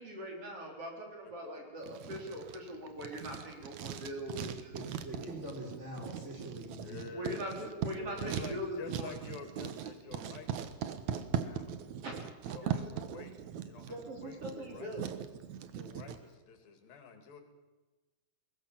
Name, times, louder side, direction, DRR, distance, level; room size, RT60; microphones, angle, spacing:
voice 1, 0.0-4.7 7.1-9.1 12.0-12.1 12.6-12.8 13.9-15.1, equal, 40° right, 1 dB, 4.8 m, -41 dB
Writing, 1.8-16.2, right 9 dB, 65° right, 2.3 m, -40 dB
voice 2, 4.7-7.3, equal, 20° right, 0 dB, 5.1 m, -44 dB
voice 3, 6.8-7.6 8.2-11.8 12.4-14.9 15.7-17.4, left 5 dB, 85° left, 7 dB, 4.3 m, -49 dB
22.5 x 19.5 x 7.5 m, 1.2 s
omnidirectional pair, 4.0 m